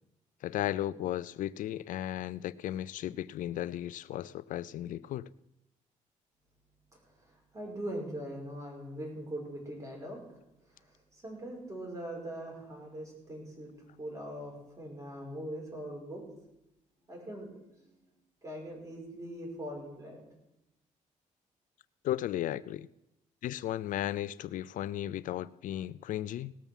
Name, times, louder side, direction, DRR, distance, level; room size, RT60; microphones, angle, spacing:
voice 1, 0.4-5.3 22.0-22.9 23.4-26.5, left 12 dB, 75° left, 0.4 m, -35 dB
voice 2, 7.2-10.2 10.7-13.7 14.0-16.2 17.1-17.6 18.4-20.2, right 1 dB, 25° right, 5.9 m, -41 dB
18.5 x 7.0 x 7.3 m
cardioid pair, 95°, 14 cm